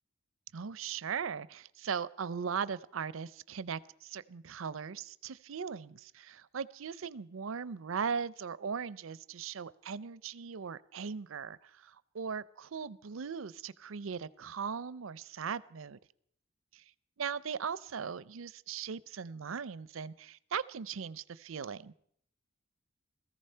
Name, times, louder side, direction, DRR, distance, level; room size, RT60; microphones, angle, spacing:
voice 1, 0.5-16.0 16.7-16.8 17.2-21.9, right 6 dB, 90° right, 19 dB, 0.5 m, -39 dB
17.5 x 14.5 x 5.6 m, 0.67 s
head